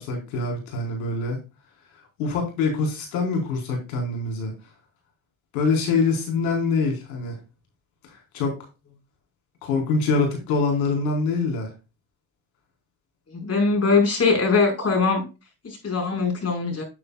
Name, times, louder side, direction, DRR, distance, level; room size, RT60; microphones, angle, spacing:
voice 1, 0.0-1.4 2.2-4.5 5.5-7.3 8.3-8.6 9.6-11.7, left 4 dB, 85° left, 1 dB, 4.5 m, -24 dB
voice 2, 13.3-15.3 15.6-16.8, left 4 dB, 35° left, 2 dB, 5.1 m, -21 dB
10.5 x 7.8 x 2.4 m, 0.29 s
supercardioid pair, 80°, 42 cm